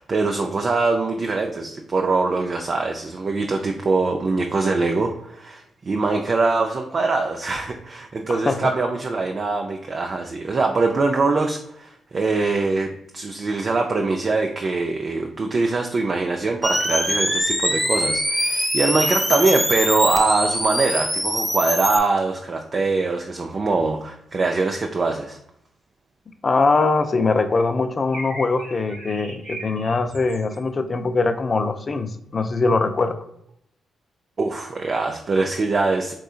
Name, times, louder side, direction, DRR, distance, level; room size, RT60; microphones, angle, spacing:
voice 1, 0.0-25.4 34.4-36.1, right 3 dB, 45° right, 2 dB, 0.3 m, -23 dB
sound 1, 16.6-22.0, equal, ahead, 0.7 m, -23 dB
voice 2, 26.4-33.2, left 3 dB, 40° left, 9 dB, 0.4 m, -22 dB
sound 2, 28.1-30.6, right 1 dB, 70° right, 0.7 m, -37 dB
3.7 x 2.6 x 2.4 m, 0.76 s
supercardioid pair, 55°, 0 cm